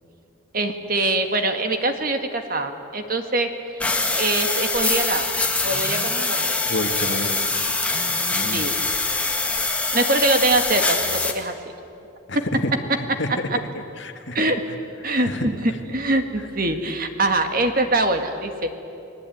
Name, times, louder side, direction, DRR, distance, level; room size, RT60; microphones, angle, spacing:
voice 1, 0.5-3.8 4.1-5.3 5.6-6.5 8.5-8.8 9.9-11.5 14.3-14.6 15.0-18.7, right 2 dB, 45° right, 6 dB, 1.9 m, -23 dB
sound 1, 3.8-11.3, left 3 dB, 5° left, 1.6 m, -24 dB
voice 2, 6.7-7.6 8.3-8.6 12.3-12.7 13.0-13.3 13.7-14.4 15.1-15.5, left 1 dB, 65° left, 5 dB, 2.1 m, -29 dB
30.0 x 20.0 x 9.4 m, 2.7 s
head